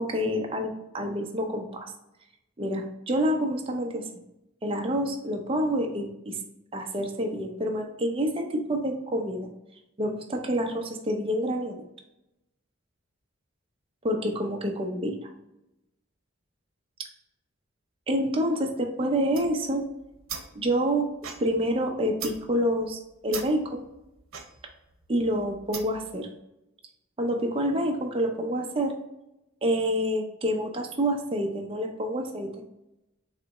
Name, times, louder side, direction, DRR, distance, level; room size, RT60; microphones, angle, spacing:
voice 1, 0.0-1.9 2.6-4.1 4.6-6.4 6.7-9.5 10.0-11.7 14.0-15.3 18.1-19.9 20.5-21.1 21.4-23.9 25.1-26.3 27.2-28.9 29.6-32.5, equal, 25° right, 2 dB, 0.6 m, -27 dB
sound 1, 19.2-26.1, right 6 dB, 85° right, 0.7 m, -42 dB
4.0 x 2.9 x 3.5 m, 0.89 s
head